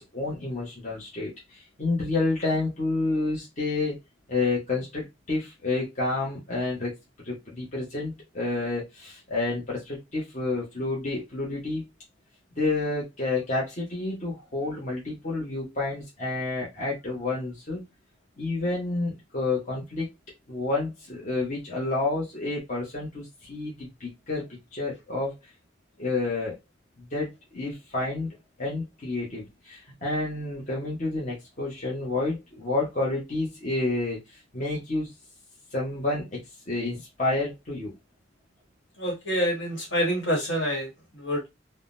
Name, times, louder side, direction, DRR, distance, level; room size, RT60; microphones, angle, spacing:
voice 1, 0.0-3.9 4.3-6.9 7.2-11.8 12.6-17.8 18.4-20.1 20.5-25.3 26.0-26.6 27.1-34.2 34.5-35.1 35.7-36.4 36.7-37.9, left 2 dB, 40° left, -4 dB, 0.9 m, -29 dB
voice 2, 39.0-41.5, equal, 70° left, -1 dB, 1.5 m, -27 dB
3.6 x 2.1 x 2.5 m, 0.21 s
head